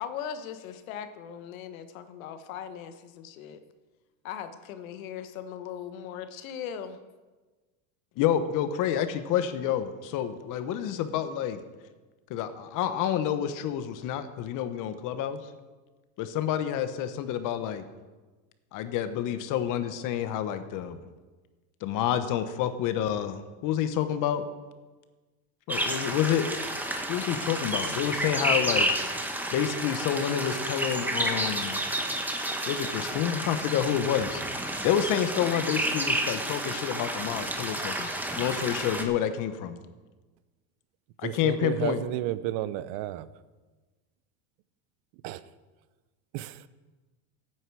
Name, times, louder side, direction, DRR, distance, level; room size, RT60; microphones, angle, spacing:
voice 1, 0.0-3.6 4.2-7.0, left 8 dB, 85° left, 10 dB, 1.3 m, -39 dB
voice 2, 8.2-11.6 12.3-15.4 16.2-17.8 18.7-21.0 21.8-24.5 25.7-26.5 27.1-28.9 29.5-31.8 32.7-34.4 34.8-38.1 38.4-39.8 41.2-42.1, left 10 dB, 50° left, 10 dB, 1.2 m, -28 dB
sound 1, 25.7-39.0, right 1 dB, 5° right, 1.2 m, -30 dB
voice 3, 41.2-43.3 45.2-45.4 46.3-46.5, right 14 dB, 60° right, 15 dB, 0.8 m, -32 dB
15.5 x 9.2 x 4.8 m, 1.3 s
supercardioid pair, 130°, 40 cm